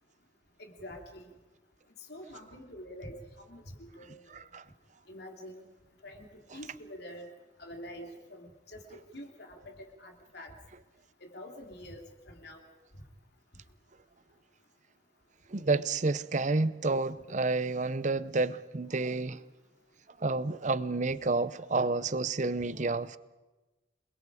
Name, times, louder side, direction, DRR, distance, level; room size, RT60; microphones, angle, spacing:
voice 1, 0.6-1.3 2.1-4.4 5.1-5.6 6.0-6.3 6.5-7.3 7.6-10.5 11.2-12.7, equal, 60° left, 3.4 m, -46 dB
voice 2, 15.5-19.4 20.2-23.2, right 3 dB, 40° right, 0.7 m, -30 dB
29.0 x 22.5 x 5.0 m
head